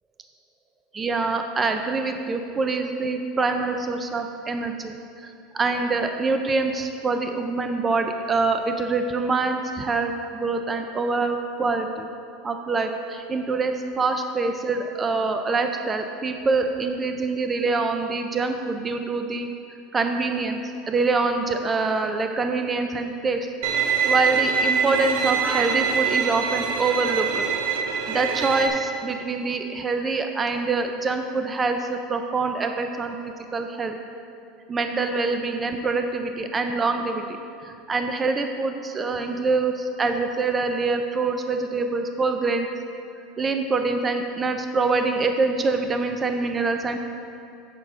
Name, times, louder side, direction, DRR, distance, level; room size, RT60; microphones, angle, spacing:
voice 1, 0.9-12.1 12.4-19.5 19.9-20.6 20.9-23.5 24.0-27.5 28.1-34.0 34.7-42.7 43.4-47.0, right 3 dB, 20° right, 6 dB, 0.5 m, -25 dB
Bowed string instrument, 23.6-28.7, right 6 dB, 65° right, 0.8 m, -24 dB
7.4 x 7.2 x 5.0 m, 2.6 s
supercardioid pair, 135°, 0 cm